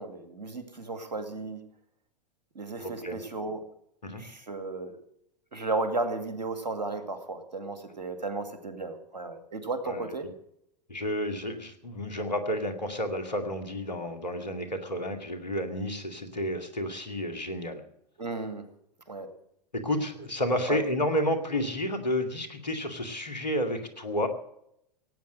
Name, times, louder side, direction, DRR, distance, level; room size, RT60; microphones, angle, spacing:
voice 1, 0.0-1.6 2.5-3.6 4.1-5.0 5.5-10.3 18.2-18.7 19.1-19.3 20.7-20.8, right 3 dB, 80° right, 8 dB, 2.2 m, -34 dB
voice 2, 2.8-3.2 4.0-4.2 9.8-10.1 10.9-17.8 19.7-24.3, equal, 80° left, 7 dB, 2.2 m, -31 dB
17.0 x 9.0 x 7.6 m, 0.74 s
figure-of-eight pair, 90°, 21 cm